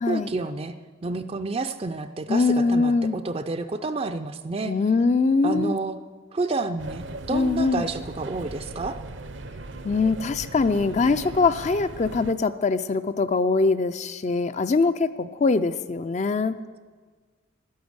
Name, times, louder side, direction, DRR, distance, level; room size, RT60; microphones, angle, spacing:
voice 1, 0.1-0.7 1.0-4.7 5.4-6.0 6.3-9.0, right 3 dB, 30° right, 9 dB, 0.4 m, -29 dB
voice 2, 2.3-3.2 4.7-5.8 7.3-7.8 9.8-16.6, left 4 dB, 35° left, 12 dB, 0.4 m, -22 dB
sound 1, 6.8-12.3, right 2 dB, 65° right, 0.7 m, -38 dB
11.0 x 10.5 x 8.0 m, 1.5 s
head